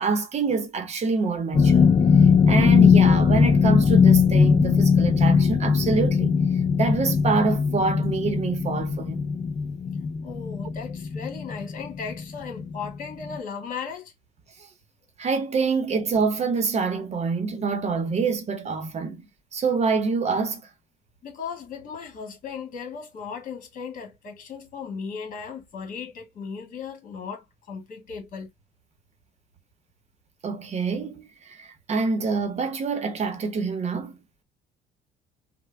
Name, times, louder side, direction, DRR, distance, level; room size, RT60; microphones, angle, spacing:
voice 1, 0.0-1.9 2.5-6.3 6.8-9.3 15.2-20.7 30.4-34.2, right 4 dB, 40° right, 0.8 m, -26 dB
sound 1, 1.5-12.2 12.5-12.9 13.3-13.4, left 6 dB, 30° left, 0.5 m, -19 dB
voice 2, 10.2-14.1 21.2-28.5, left 6 dB, 55° left, 1.7 m, -36 dB
3.4 x 2.2 x 3.3 m
cardioid pair, 110°, 17 cm